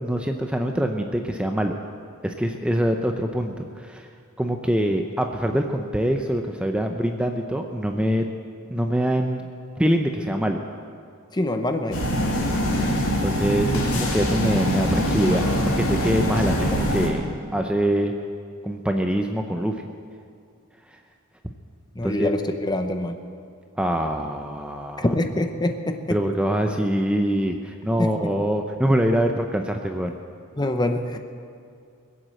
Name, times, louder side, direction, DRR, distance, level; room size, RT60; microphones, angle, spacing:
voice 1, 0.0-1.8 2.2-4.1 4.4-8.3 8.7-9.5 9.8-10.6 13.2-15.5 15.8-17.2 17.5-18.1 18.6-19.8 22.0-22.3 23.8-25.0 26.1-30.2, equal, 5° right, 4 dB, 0.6 m, -24 dB
voice 2, 11.3-12.4 21.9-23.1 25.0-26.2 28.0-28.1 30.6-31.2, left 1 dB, 20° left, 7 dB, 0.9 m, -25 dB
sound 1, 11.9-17.1, equal, 75° left, 2.8 m, -23 dB
21.0 x 8.0 x 7.7 m, 2.3 s
head